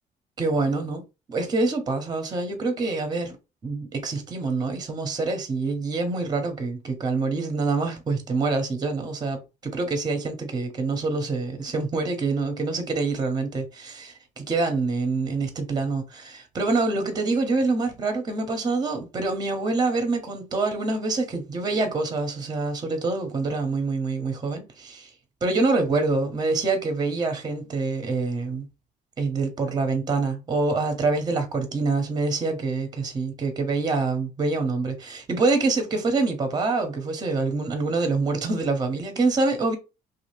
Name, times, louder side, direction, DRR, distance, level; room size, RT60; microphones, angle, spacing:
voice 1, 0.4-3.4 3.6-25.1 25.4-28.7 29.2-39.8, right 3 dB, 25° right, 0.8 m, -26 dB
2.7 x 2.4 x 3.1 m
cardioid pair, 110°, 17 cm